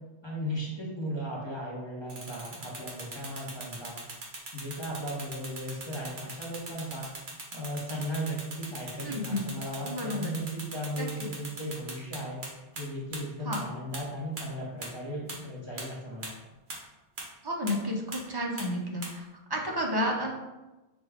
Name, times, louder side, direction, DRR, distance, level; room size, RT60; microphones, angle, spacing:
voice 1, 0.2-4.0 4.5-7.1 7.5-12.4 12.7-16.3, equal, 25° left, -4 dB, 0.8 m, -36 dB
sound 1, 2.1-12.5 12.8-12.9 13.1-13.2 13.5-13.6 13.9-14.0 14.4-14.5 14.8-14.9 15.3-15.4 15.8-15.9 16.2-16.3 16.7-16.8 17.2-17.3 17.7-17.8 18.1-18.2 18.6-18.7 19.0-19.1, right 2 dB, 50° right, 1.0 m, -39 dB
voice 2, 9.0-9.5 9.8-10.4 11.0-11.1 13.4-13.6 17.4-20.3, left 1 dB, 30° right, -1 dB, 0.5 m, -31 dB
6.0 x 2.3 x 3.4 m, 1.1 s
omnidirectional pair, 1.2 m